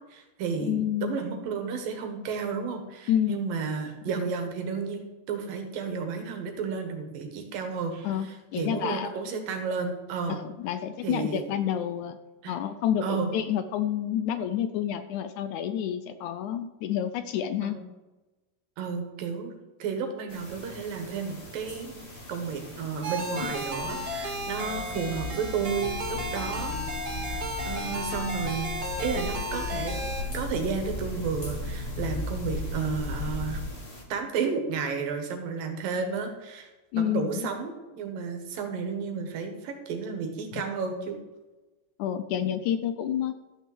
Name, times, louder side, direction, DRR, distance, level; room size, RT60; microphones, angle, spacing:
voice 1, 0.1-10.4 11.0-11.6 12.4-12.5 13.0-13.3 17.6-17.8 18.8-19.5 19.8-26.8 27.2-29.9 30.3-33.6 34.1-36.7 37.0-41.2, right 5 dB, 85° right, 5 dB, 3.4 m, -32 dB
voice 2, 0.6-1.2 3.1-3.5 8.0-9.1 10.3-12.2 12.5-17.8 23.4-23.5 36.9-37.4 40.5-40.6 42.0-43.4, left 10 dB, 75° left, 10 dB, 1.9 m, -29 dB
sound 1, 20.3-34.0, left 2 dB, 25° left, 1.7 m, -45 dB
sound 2, 23.0-30.2, equal, 40° right, 2.7 m, -34 dB
sound 3, 23.4-33.7, left 2 dB, 60° left, 0.8 m, -36 dB
13.5 x 6.1 x 7.8 m, 1.1 s
omnidirectional pair, 3.9 m